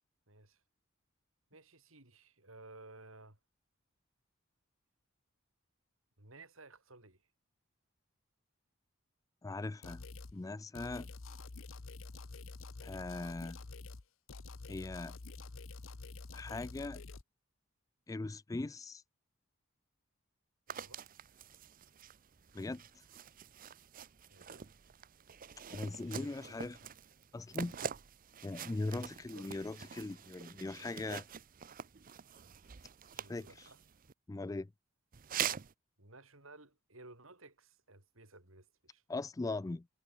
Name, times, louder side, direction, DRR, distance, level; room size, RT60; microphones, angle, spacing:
voice 1, 0.3-0.6 1.5-3.4 6.2-7.3 20.7-21.0 24.3-24.7 26.0-26.5 29.1-29.6 33.1-33.8 36.0-39.0, right 2 dB, 75° right, 5.7 m, -57 dB
voice 2, 9.4-10.1 10.3-11.1 12.8-13.6 14.7-15.2 16.3-17.0 18.1-19.0 22.5-23.0 25.7-26.8 27.3-27.8 28.4-31.3 33.3-33.7 34.3-34.7 39.1-39.9, left 2 dB, 15° left, 0.3 m, -40 dB
sound 1, 9.8-10.3 10.7-14.0 14.3-17.2, left 3 dB, 70° left, 1.0 m, -48 dB
sound 2, 20.7-34.1 35.1-35.7, right 8 dB, 40° right, 0.6 m, -45 dB
head